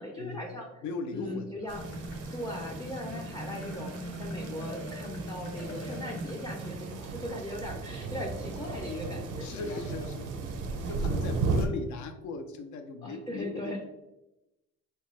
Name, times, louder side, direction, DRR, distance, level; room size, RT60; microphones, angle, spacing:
voice 1, 0.0-0.7 1.1-1.8 2.3-9.8 10.7-11.1 13.0-13.8, left 1 dB, 15° left, -1 dB, 0.4 m, -39 dB
voice 2, 0.8-1.7 3.1-3.2 9.4-10.3 10.7-13.8, left 3 dB, 70° left, 7 dB, 0.5 m, -38 dB
sound 1, 1.7-7.4, right 1 dB, 50° left, 1.0 m, -40 dB
sound 2, 1.7-11.7, right 3 dB, 80° right, 0.5 m, -36 dB
sound 3, 4.6-5.0 5.6-6.0 8.6-9.0 9.6-10.0, left 2 dB, 90° left, 1.0 m, -45 dB
2.7 x 2.2 x 3.1 m, 0.95 s
cardioid pair, 90°, 30 cm